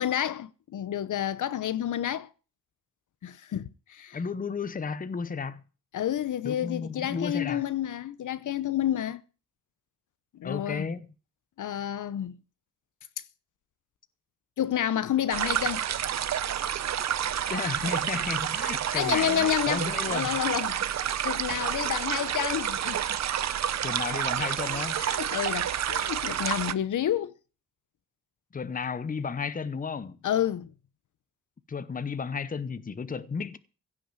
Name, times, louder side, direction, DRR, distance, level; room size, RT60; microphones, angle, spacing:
voice 1, 0.0-2.3 3.2-4.2 5.9-9.2 10.4-10.9 11.6-12.4 14.6-15.8 18.9-23.1 24.7-27.3 30.2-30.7, left 10 dB, 65° left, 0.8 m, -30 dB
voice 2, 4.1-5.6 6.4-7.6 10.4-11.1 17.5-20.4 23.8-25.0 28.5-30.2 31.7-33.6, left 5 dB, 25° left, 0.8 m, -33 dB
sound 1, 15.3-26.7, right 10 dB, 55° right, 0.7 m, -29 dB
16.0 x 6.2 x 9.0 m
wide cardioid pair, 145°, 33 cm